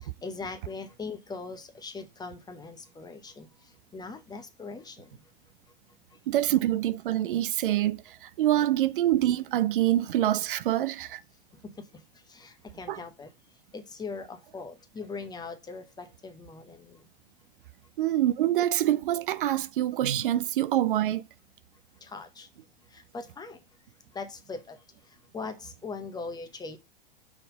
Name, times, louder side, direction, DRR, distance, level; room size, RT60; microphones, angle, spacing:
voice 1, 0.0-5.2 6.1-6.2 11.6-12.0 12.3-13.3 13.7-17.0 22.0-22.5 22.9-23.6 24.1-26.8, left 4 dB, 15° left, 0.9 m, -41 dB
voice 2, 6.3-11.2 12.9-13.0 18.0-21.2, right 13 dB, 60° right, 0.5 m, -25 dB
5.6 x 3.6 x 5.2 m
figure-of-eight pair, 95°, 29 cm